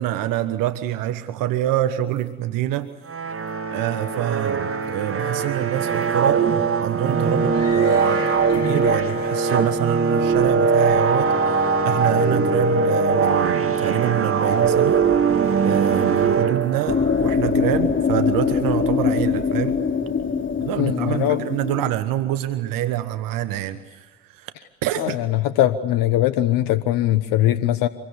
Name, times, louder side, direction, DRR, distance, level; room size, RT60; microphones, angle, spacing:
voice 1, 0.0-2.9 3.7-6.4 6.8-11.3 11.8-15.0 15.6-19.8 20.6-24.5 24.8-25.2, right 13 dB, 70° right, 11 dB, 1.3 m, -26 dB
sound 1, 1.8-2.2 2.7-2.9 3.5-3.6 4.0-4.1 4.6-5.0 5.9-6.1 6.6-6.7 7.1-11.3 11.5-11.6 12.4-12.5 14.5-15.0 15.2-17.3, left 6 dB, 90° left, 5.7 m, -41 dB
sound 2, 3.1-17.2, right 5 dB, 40° right, 2.5 m, -21 dB
sound 3, 16.9-21.9, left 6 dB, 35° left, 2.9 m, -22 dB
voice 2, 20.8-21.4 25.0-27.9, left 13 dB, 70° left, 12 dB, 1.2 m, -21 dB
26.5 x 23.0 x 8.1 m, 1.2 s
hypercardioid pair, 55°, 35 cm